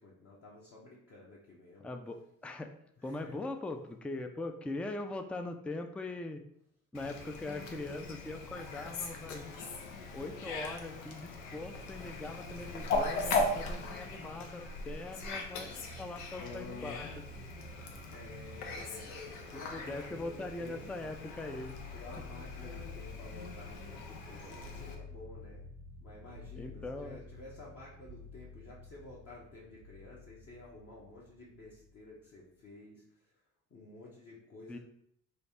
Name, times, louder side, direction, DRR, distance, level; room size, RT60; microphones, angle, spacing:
voice 1, 0.0-1.9 3.0-3.4 18.0-20.8 21.9-25.7 26.0-33.0 33.7-34.8, left 2 dB, 40° left, -6 dB, 1.0 m, -52 dB
voice 2, 1.8-2.7 3.0-6.4 6.9-9.4 10.1-15.7 16.0-17.1 19.5-21.8 26.6-27.2 34.7-34.8, left 2 dB, 5° left, 6 dB, 0.3 m, -41 dB
Fowl, 6.9-24.9, left 3 dB, 85° left, 0.6 m, -39 dB
sound 1, 15.2-32.3, left 2 dB, 60° right, 0.6 m, -51 dB
3.3 x 2.4 x 4.1 m, 0.71 s
hypercardioid pair, 55°, 36 cm